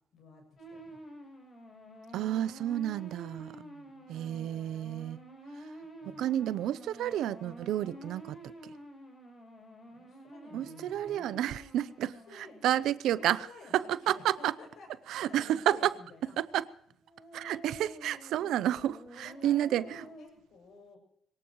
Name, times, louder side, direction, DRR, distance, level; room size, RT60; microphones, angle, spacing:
voice 1, 0.1-1.0 3.5-4.1 6.0-6.2 9.9-11.4 12.0-12.7 13.1-16.3 19.1-21.0, left 3 dB, 70° left, 7.4 m, -53 dB
sound 1, 0.6-12.9 17.1-20.3, right 1 dB, 40° left, 7.8 m, -49 dB
voice 2, 2.1-3.5 4.1-5.2 6.1-8.4 10.5-12.1 12.4-13.4 13.7-14.5 15.1-15.8 16.5-16.7 17.3-20.1, right 12 dB, 85° right, 0.6 m, -30 dB
23.0 x 18.5 x 3.1 m
cardioid pair, 90°, 0 cm